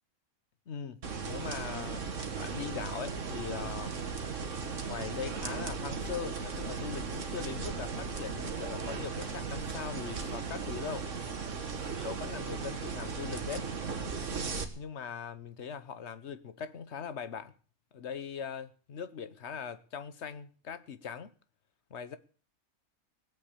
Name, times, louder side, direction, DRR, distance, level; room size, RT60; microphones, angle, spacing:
voice 1, 0.7-2.0 2.4-3.9 4.9-11.1 11.9-13.7 14.8-17.5 17.9-21.3 21.9-22.2, left 7 dB, 55° left, 1.3 m, -40 dB
sound 1, 1.0-14.6, right 5 dB, 60° right, 2.0 m, -37 dB
18.5 x 8.2 x 8.5 m
omnidirectional pair, 1.5 m